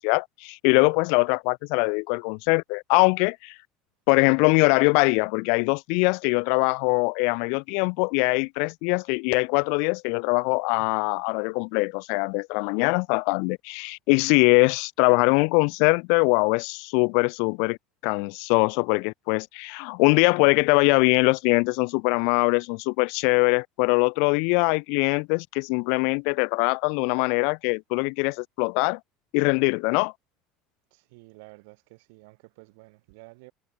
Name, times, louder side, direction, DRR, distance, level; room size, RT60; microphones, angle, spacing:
voice 1, 0.0-3.6 4.1-17.8 18.0-29.0 29.3-30.1, left 39 dB, 65° left, 0.3 m, -22 dB
voice 2, 30.9-33.5, right 28 dB, 90° right, 5.0 m, -51 dB
cardioid pair, 175°, 0 cm